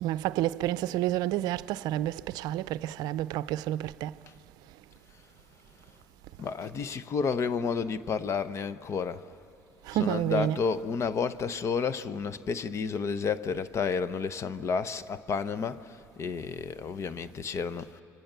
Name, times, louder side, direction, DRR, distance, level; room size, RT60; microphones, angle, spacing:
voice 1, 0.0-4.1 9.9-10.6, right 14 dB, 70° right, 0.5 m, -29 dB
voice 2, 6.4-9.3 9.9-18.0, left 5 dB, 40° left, 0.9 m, -31 dB
28.5 x 24.5 x 6.9 m
supercardioid pair, 85°, 7 cm